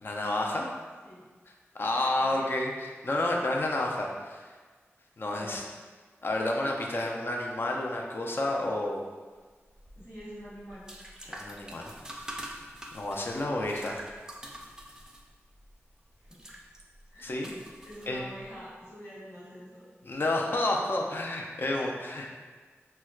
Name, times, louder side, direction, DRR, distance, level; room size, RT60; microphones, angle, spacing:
voice 1, 0.0-0.7 1.7-4.5 5.2-5.6 6.2-9.0 11.3-12.2 12.9-14.0 17.2-17.5 18.1-18.2 20.0-22.4, left 1 dB, 50° left, 0 dB, 0.5 m, -30 dB
sound 1, 9.7-18.6, right 1 dB, 15° right, 0.4 m, -46 dB
voice 2, 9.9-10.9 16.2-16.4 17.1-17.3 17.8-19.9, equal, 85° left, -11 dB, 1.4 m, -45 dB
4.3 x 2.1 x 2.3 m, 1.4 s
wide cardioid pair, 65°, 5 cm